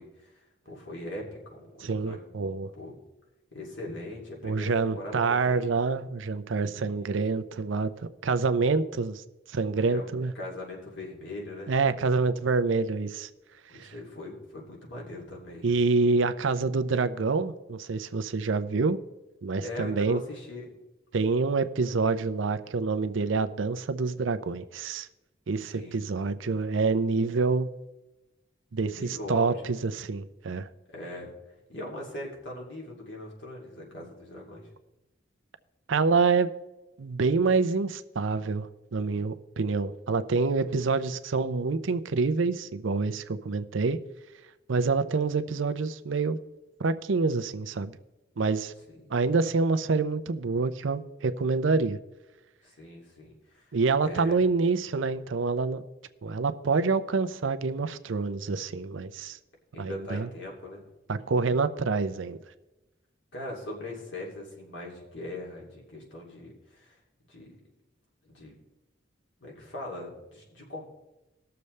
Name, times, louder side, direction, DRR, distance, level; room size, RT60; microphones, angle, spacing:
voice 1, 0.0-2.4 2.7-3.0 3.5-5.7 6.7-7.2 9.8-10.0 10.3-11.7 13.7-15.7 19.6-20.7 25.6-26.1 28.9-29.7 30.9-31.3 31.7-34.7 48.9-49.1 52.6-53.7 54.0-54.4 59.7-60.9 63.3-67.0 67.3-67.6 68.2-68.5 69.4-70.8, left 1 dB, 65° left, 2.6 m, -41 dB
voice 2, 1.8-2.7 4.4-7.9 8.2-10.3 11.7-13.3 13.8-13.9 15.6-19.0 19.4-20.2 21.1-25.1 25.5-27.7 28.7-30.7 35.9-36.5 37.0-44.0 44.7-46.4 46.8-47.9 48.4-48.7 49.1-52.0 53.7-55.8 56.2-59.4 59.8-60.3 61.1-62.4, right 4 dB, 75° right, 0.5 m, -27 dB
19.0 x 6.8 x 3.2 m
head